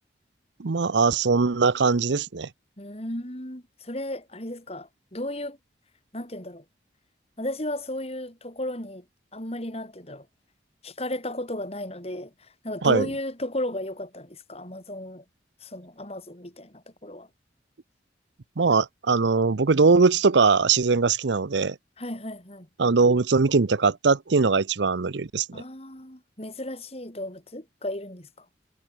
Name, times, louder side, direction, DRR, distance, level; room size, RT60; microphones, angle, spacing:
voice 1, 0.6-2.5 12.8-13.1 18.6-21.8 22.8-25.6, right 4 dB, 80° right, 0.7 m, -21 dB
voice 2, 2.8-5.6 6.1-6.6 7.4-9.0 9.3-10.3 10.8-15.2 15.6-17.3 22.0-22.7 25.5-28.5, left 1 dB, 35° left, 5.2 m, -34 dB
head